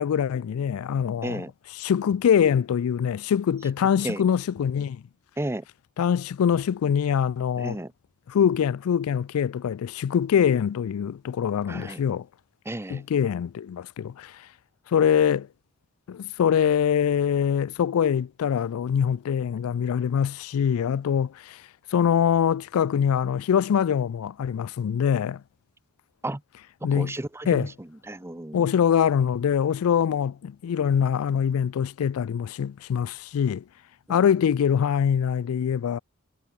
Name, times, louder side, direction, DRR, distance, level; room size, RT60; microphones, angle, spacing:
voice 1, 0.0-1.4 1.8-5.0 6.0-7.8 8.3-12.3 12.9-14.5 14.9-15.5 16.1-21.6 21.9-25.4 26.8-27.1 27.5-27.7 28.5-33.6 34.1-36.0, left 8 dB, 85° left, 0.3 m, -24 dB
voice 2, 1.2-1.5 4.0-4.3 5.4-5.6 7.6-7.9 11.7-12.0 12.6-13.0 26.2-26.4 26.9-28.7 34.1-34.2, right 1 dB, 10° right, 0.8 m, -33 dB
head